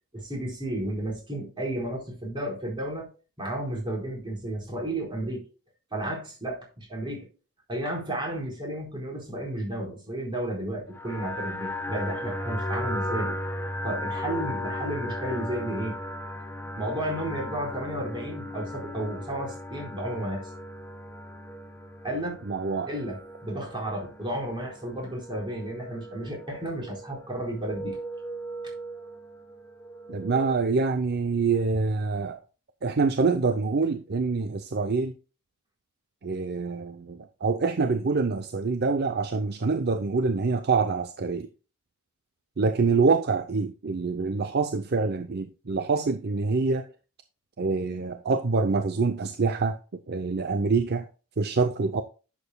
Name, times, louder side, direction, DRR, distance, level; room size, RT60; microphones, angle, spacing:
voice 1, 0.1-3.1 3.4-5.5 5.9-7.3 7.7-13.4 13.8-16.0 16.8-20.5 22.0-22.4 22.9-28.0, right 1 dB, 20° right, 4.3 m, -32 dB
sound 1, 10.9-30.6, left 1 dB, 10° left, 1.0 m, -36 dB
voice 2, 22.5-22.9 30.1-32.4 32.8-35.1 36.2-41.5 42.6-46.8 47.6-51.1 51.4-52.0, right 4 dB, 45° right, 0.6 m, -26 dB
11.0 x 7.3 x 2.2 m
head